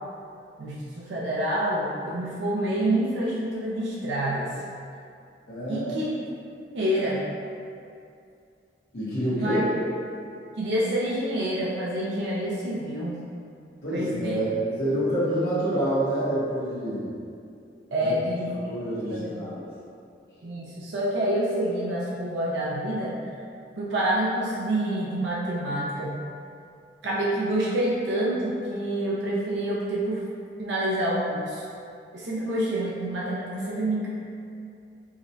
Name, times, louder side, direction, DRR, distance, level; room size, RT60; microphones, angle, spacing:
voice 1, 0.6-4.5 5.7-6.1 6.7-7.2 9.3-9.7 10.6-13.2 13.9-14.4 17.9-18.5 19.1-19.5 20.4-23.2 23.8-26.2 27.0-30.2 30.6-31.7 32.1-34.1, right 1 dB, 90° right, -6 dB, 0.5 m, -27 dB
voice 2, 5.5-5.9 8.9-9.6 13.8-17.1 18.0-18.1 18.5-19.7, right 1 dB, 65° left, -12 dB, 1.0 m, -27 dB
4.8 x 2.1 x 2.7 m, 2.4 s
head